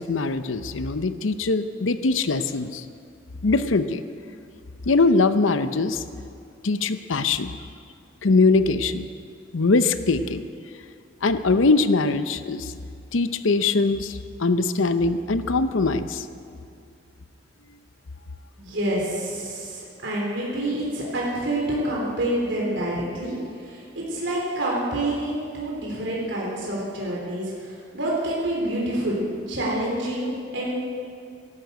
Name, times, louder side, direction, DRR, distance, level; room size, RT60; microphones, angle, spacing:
voice 1, 0.0-2.8 3.4-4.1 4.9-6.0 6.6-7.5 8.2-9.0 9.5-10.5 11.2-12.7 13.1-16.3, left 3 dB, 90° left, 11 dB, 0.7 m, -22 dB
voice 2, 18.6-23.4 23.6-29.2 29.5-30.7, right 1 dB, 70° right, -4 dB, 3.4 m, -27 dB
12.5 x 12.0 x 8.1 m, 2.4 s
head